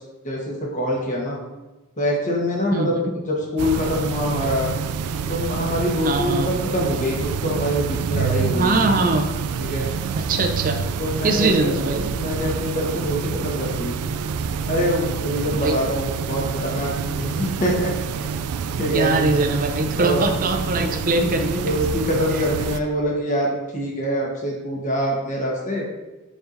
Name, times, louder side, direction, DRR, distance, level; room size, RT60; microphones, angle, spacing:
voice 1, 0.2-1.4 2.0-3.0 3.3-4.7 5.3-9.1 9.6-9.9 11.0-11.7 12.1-13.9 14.6-18.3 18.8-19.2 20.0-20.3 20.7-21.0 21.6-25.9, equal, 35° left, -2 dB, 1.3 m, -24 dB
sound 1, 3.6-22.8, right 6 dB, 90° right, 0.3 m, -27 dB
voice 2, 6.0-6.5 8.5-9.3 10.2-10.8 11.2-12.1 15.6-15.8 18.9-21.6, right 3 dB, 40° right, 5 dB, 0.6 m, -22 dB
7.0 x 5.4 x 2.6 m, 1.1 s
head